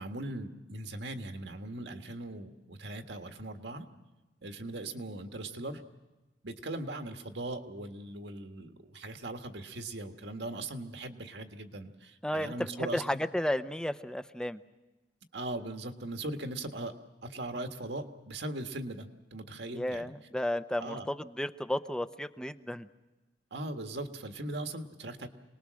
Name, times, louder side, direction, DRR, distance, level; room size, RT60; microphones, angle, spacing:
voice 1, 0.0-3.9 4.4-5.8 6.4-13.2 15.3-16.9 17.2-20.1 20.8-21.1 23.5-25.3, right 2 dB, 85° right, 5 dB, 1.7 m, -39 dB
voice 2, 12.2-14.6 19.7-22.9, left 1 dB, 5° left, 11 dB, 0.7 m, -33 dB
26.5 x 20.0 x 6.4 m, 1.1 s
head